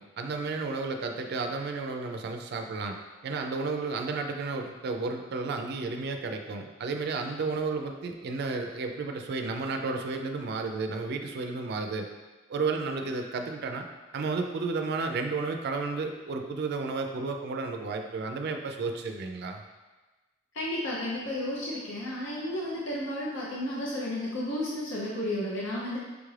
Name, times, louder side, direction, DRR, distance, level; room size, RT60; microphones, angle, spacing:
voice 1, 0.0-12.1 12.5-13.8 14.1-19.6, right 3 dB, 55° right, 5 dB, 0.4 m, -32 dB
voice 2, 20.5-26.0, left 1 dB, 65° left, -6 dB, 0.6 m, -32 dB
5.0 x 2.4 x 3.2 m, 1.2 s
head